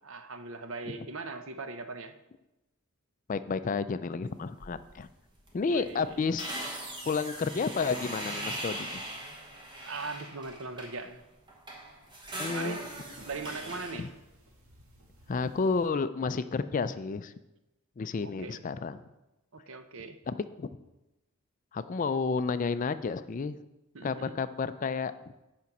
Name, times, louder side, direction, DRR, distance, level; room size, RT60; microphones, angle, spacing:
voice 1, 0.0-2.1 5.7-6.2 9.8-11.2 12.5-12.9 13.2-14.1 18.2-18.6 19.5-20.2 23.9-24.3, right 3 dB, 65° right, 10 dB, 0.7 m, -40 dB
voice 2, 3.3-5.1 5.5-6.5 7.0-9.0 12.4-12.8 13.9-14.1 15.3-17.3 18.0-19.0 20.3-20.7 21.7-23.6 24.0-25.1, left 4 dB, 35° left, 13 dB, 0.3 m, -31 dB
sound 1, 4.6-5.0 5.4-5.5 5.8-11.1 11.5-14.1, right 1 dB, 20° right, 1.2 m, -40 dB
sound 2, 12.8-15.9, right 1 dB, 80° right, 1.6 m, -55 dB
8.4 x 5.2 x 6.0 m, 0.98 s
head